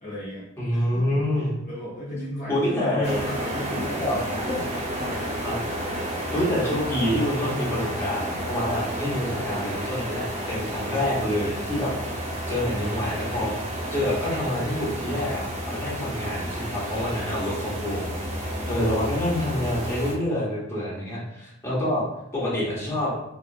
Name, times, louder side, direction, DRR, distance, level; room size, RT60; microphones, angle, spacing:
voice 1, 0.0-0.5 0.7-1.2 1.7-4.4 5.0-5.7 15.7-15.9 20.9-21.2, left 1 dB, 40° left, -7 dB, 0.7 m, -35 dB
voice 2, 0.6-1.5 2.5-3.2 4.0-4.2 4.5-4.6 5.4-5.8 6.3-11.9 12.5-13.5 13.9-18.1 18.4-22.0 22.3-23.1, left 1 dB, 10° left, -8 dB, 0.9 m, -27 dB
sound 1, 3.0-20.1, equal, 30° right, 0.5 m, -31 dB
2.7 x 2.4 x 2.6 m, 0.80 s
head